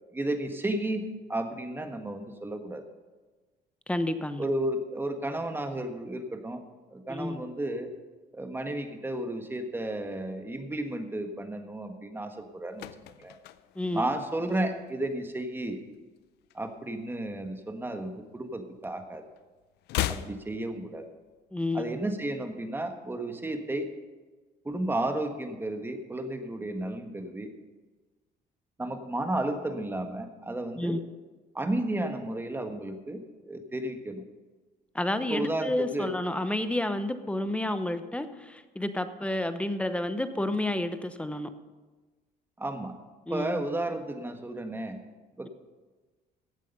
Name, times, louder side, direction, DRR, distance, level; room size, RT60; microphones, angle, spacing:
voice 1, 0.1-1.0 1.3-2.8 4.4-6.6 6.9-7.9 8.3-12.9 13.2-13.3 13.9-15.8 16.5-19.2 20.1-21.1 21.7-23.9 24.6-27.5 28.8-31.0 31.5-34.2 35.3-36.1 42.6-43.0 43.3-45.0 45.4-45.5, right 1 dB, 15° right, 6 dB, 1.4 m, -33 dB
voice 2, 3.9-4.5 7.1-7.4 13.8-14.0 21.5-22.0 30.8-31.0 34.9-41.5 43.3-43.6, left 1 dB, 5° left, 10 dB, 0.8 m, -30 dB
sound 1, 12.4-15.1 15.4-15.7 15.9-17.4 17.7-19.0 19.3-21.4 21.7-21.8, left 14 dB, 80° left, 0.6 m, -38 dB
15.0 x 8.3 x 5.4 m, 1.3 s
cardioid pair, 110°, 17 cm